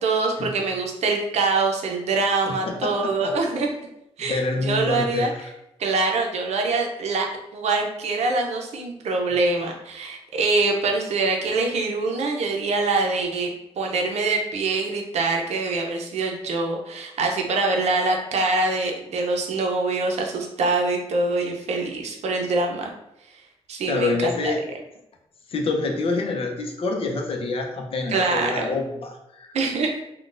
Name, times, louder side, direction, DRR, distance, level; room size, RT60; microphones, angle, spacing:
voice 1, 0.0-3.7 4.2-5.3 5.8-7.3 7.5-22.9 23.7-24.6 28.1-28.8 29.5-30.0, right 3 dB, 80° right, 2 dB, 0.6 m, -24 dB
voice 2, 2.5-3.3 4.2-5.3 23.9-24.6 25.5-29.6, left 3 dB, 55° left, 2 dB, 0.6 m, -27 dB
3.8 x 2.2 x 2.5 m, 0.83 s
wide cardioid pair, 125°, 11 cm